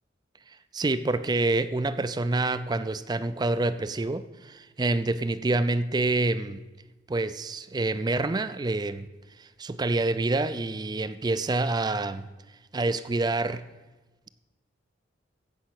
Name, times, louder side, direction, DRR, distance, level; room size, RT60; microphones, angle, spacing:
voice 1, 0.5-6.6 7.1-9.1 9.4-12.3 12.7-13.6, right 2 dB, 20° right, 14 dB, 0.4 m, -27 dB
14.5 x 5.4 x 8.2 m, 1.2 s
head